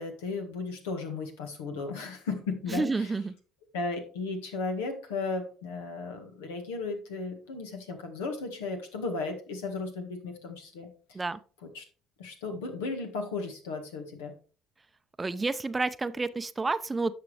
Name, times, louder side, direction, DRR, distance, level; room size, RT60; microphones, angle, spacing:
voice 1, 0.0-3.1 3.7-11.2 11.7-11.8 12.2-14.3, left 3 dB, 90° left, 4 dB, 1.7 m, -35 dB
voice 2, 2.7-3.3 11.1-11.4 15.2-17.1, right 3 dB, 20° right, 13 dB, 0.6 m, -30 dB
10.5 x 6.0 x 3.3 m, 0.38 s
hypercardioid pair, 70°, 0 cm